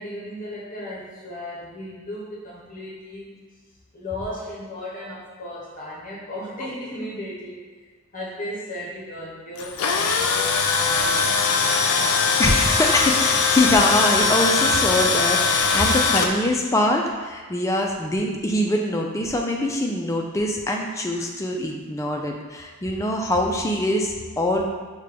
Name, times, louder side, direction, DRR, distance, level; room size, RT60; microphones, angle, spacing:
voice 1, 0.0-3.3 3.9-7.7 8.1-10.4 10.7-12.3, left 1 dB, 35° left, -6 dB, 0.8 m, -35 dB
Tools, 9.6-16.3, left 4 dB, 90° left, 0.4 m, -21 dB
voice 2, 12.4-24.7, left 1 dB, 15° left, 1 dB, 0.3 m, -23 dB
5.1 x 2.2 x 3.4 m, 1.5 s
head